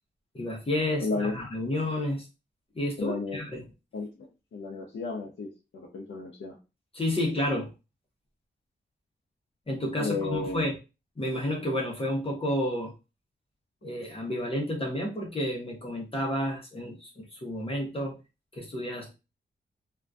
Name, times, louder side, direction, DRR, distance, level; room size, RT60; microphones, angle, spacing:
voice 1, 0.3-2.3 2.7-3.6 6.9-7.7 9.7-10.8 11.2-12.9 13.8-18.1 18.5-19.1, left 1 dB, 30° left, -1 dB, 0.7 m, -30 dB
voice 2, 1.0-1.3 3.0-3.4 3.9-4.1 4.5-6.5 10.0-10.7, left 3 dB, 80° left, 0 dB, 0.5 m, -32 dB
2.5 x 2.2 x 2.2 m, 0.29 s
wide cardioid pair, 110°, 19 cm